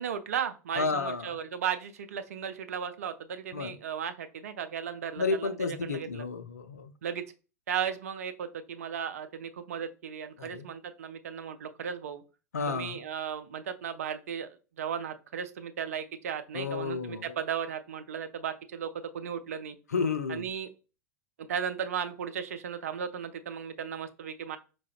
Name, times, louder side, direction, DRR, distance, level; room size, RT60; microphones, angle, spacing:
voice 1, 0.0-6.3 7.0-7.2 7.7-12.2 12.7-19.8 20.3-20.7 21.4-24.6, right 8 dB, 65° right, 0.4 m, -35 dB
voice 2, 0.8-1.3 3.5-3.8 5.2-6.9 10.4-10.7 12.5-13.0 16.5-17.4 19.9-20.4, left 4 dB, 75° left, 0.4 m, -31 dB
4.7 x 2.0 x 2.3 m
figure-of-eight pair, 90°, 9 cm